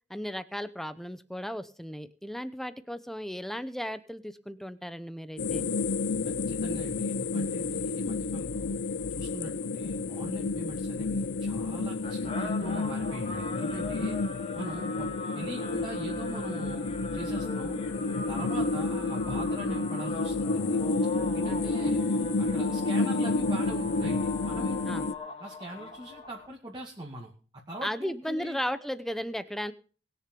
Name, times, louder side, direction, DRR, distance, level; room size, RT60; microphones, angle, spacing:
voice 1, 0.1-5.6 24.9-25.1 27.8-29.7, equal, ahead, 13 dB, 0.8 m, -35 dB
sound 1, 5.4-25.1, left 3 dB, 70° left, 0.6 m, -30 dB
voice 2, 6.2-8.8 9.1-14.2 14.6-15.1 15.3-17.8 18.3-20.8 21.3-22.0 22.4-25.1 25.4-27.3 27.7-28.6, right 1 dB, 25° right, -1 dB, 2.2 m, -41 dB
sound 2, 11.6-26.5, left 3 dB, 35° left, 2.4 m, -40 dB
20.5 x 6.8 x 5.3 m, 0.39 s
head